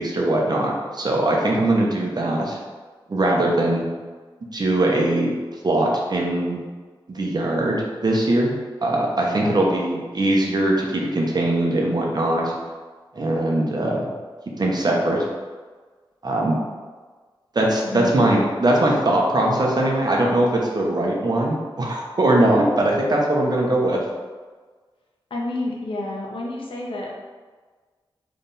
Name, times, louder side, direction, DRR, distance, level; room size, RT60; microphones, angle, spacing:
voice 1, 0.0-2.6 3.1-3.9 4.5-5.3 5.6-6.6 7.1-8.5 8.8-12.5 13.1-14.1 14.6-15.2 16.2-16.6 17.5-24.0, right 1 dB, 50° right, -1 dB, 1.0 m, -21 dB
voice 2, 9.2-9.8 17.8-18.4 25.3-27.1, left 2 dB, 70° left, -3 dB, 1.0 m, -30 dB
3.6 x 3.4 x 4.2 m, 1.4 s
cardioid pair, 55°, 9 cm